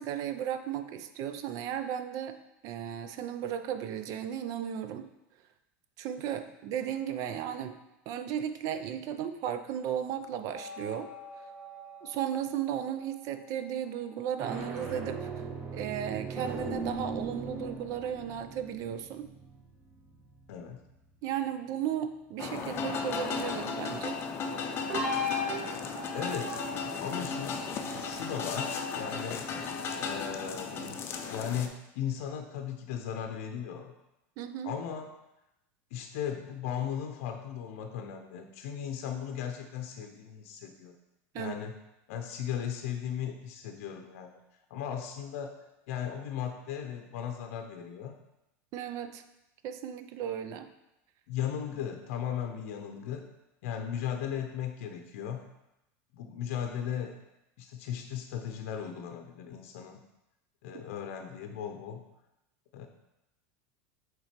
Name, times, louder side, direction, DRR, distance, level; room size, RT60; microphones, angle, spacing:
voice 1, 0.0-2.4 2.6-5.1 6.0-7.8 8.1-11.1 12.0-15.2 15.7-19.3 21.2-24.2 34.4-34.7 41.3-41.6 48.7-49.2 49.6-50.7, right 9 dB, 50° right, 9 dB, 0.5 m, -35 dB
sound 1, 10.5-13.2 14.2-21.0 24.9-29.1, equal, 20° right, 1.3 m, -39 dB
voice 2, 20.5-20.8 25.9-26.6 27.0-29.5 30.0-31.0 31.3-33.9 34.6-35.1 35.9-41.0 41.3-41.7 42.1-44.4 44.7-48.1 51.3-53.3 53.6-55.5 56.1-57.2 57.6-60.0 60.6-62.0 62.7-62.9, left 8 dB, 75° left, 5 dB, 0.6 m, -37 dB
sound 2, 22.4-31.7, left 5 dB, 35° left, 0.6 m, -35 dB
5.7 x 3.8 x 4.4 m, 0.90 s
supercardioid pair, 135°, 7 cm